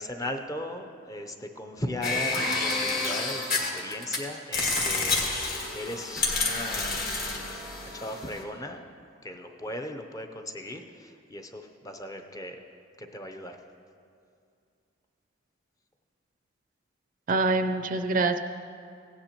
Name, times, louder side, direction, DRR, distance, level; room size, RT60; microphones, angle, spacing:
voice 1, 0.0-7.1 7.9-8.8 9.2-12.6 13.0-13.6, left 1 dB, 20° left, 4 dB, 0.6 m, -37 dB
sound 1, 2.0-4.2 4.5-8.4, left 3 dB, 50° left, 1.6 m, -29 dB
voice 2, 17.3-18.4, right 3 dB, 45° right, 8 dB, 0.4 m, -25 dB
16.5 x 9.7 x 2.9 m, 2.4 s
head